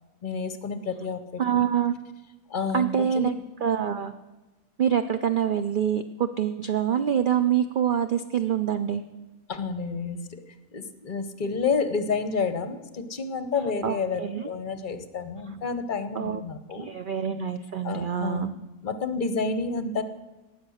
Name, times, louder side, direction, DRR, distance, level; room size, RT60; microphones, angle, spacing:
voice 1, 0.2-1.6 2.5-3.3 9.5-10.4 10.7-16.9 17.8-20.0, left 4 dB, 40° left, 10 dB, 0.8 m, -30 dB
voice 2, 1.4-1.9 2.7-4.1 4.8-9.0 13.8-14.4 16.2-16.4 16.7-18.5, right 9 dB, 80° right, 10 dB, 0.4 m, -25 dB
18.0 x 7.0 x 6.3 m, 1.1 s
omnidirectional pair, 1.5 m